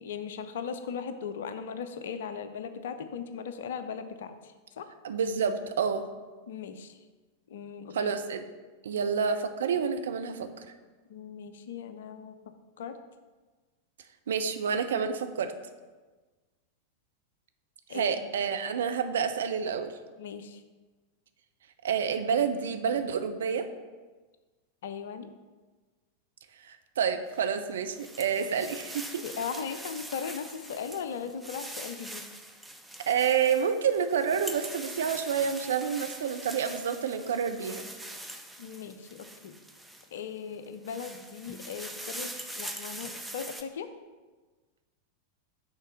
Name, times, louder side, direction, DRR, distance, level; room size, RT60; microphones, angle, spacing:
voice 1, 0.0-4.9 6.5-7.0 7.5-8.1 9.0-9.1 11.1-12.4 12.8-13.0 17.9-18.2 20.2-20.6 24.8-25.3 29.2-32.2 38.6-39.6 40.1-43.9, left 6 dB, 60° left, 10 dB, 0.5 m, -38 dB
voice 2, 5.0-6.0 7.9-8.4 8.8-10.7 14.3-15.5 17.9-19.9 21.8-23.7 26.6-29.2 33.0-37.9, right 7 dB, 65° right, 8 dB, 0.5 m, -29 dB
sound 1, 27.4-40.2 40.6-43.6, right 1 dB, 5° right, 0.6 m, -43 dB
6.4 x 4.0 x 6.1 m, 1.3 s
figure-of-eight pair, 90°, 0 cm